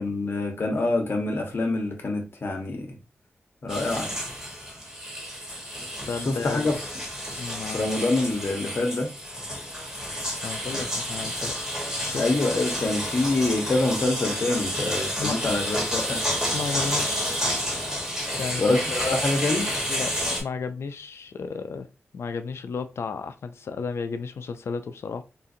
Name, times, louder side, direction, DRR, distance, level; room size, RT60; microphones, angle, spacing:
voice 1, 0.0-3.0 3.6-4.2 6.2-6.7 7.7-9.1 12.2-16.2 18.6-19.7, left 2 dB, 55° left, 1.0 m, -26 dB
sound 1, 3.7-20.4, equal, 15° right, 1.4 m, -30 dB
voice 2, 6.1-6.7 7.4-7.8 10.4-11.5 12.0-12.3 15.2-15.4 16.5-17.4 18.4-18.8 19.9-20.1 20.4-21.9 22.1-25.2, left 5 dB, 75° left, 0.4 m, -33 dB
3.8 x 2.5 x 2.7 m
wide cardioid pair, 90°, 4 cm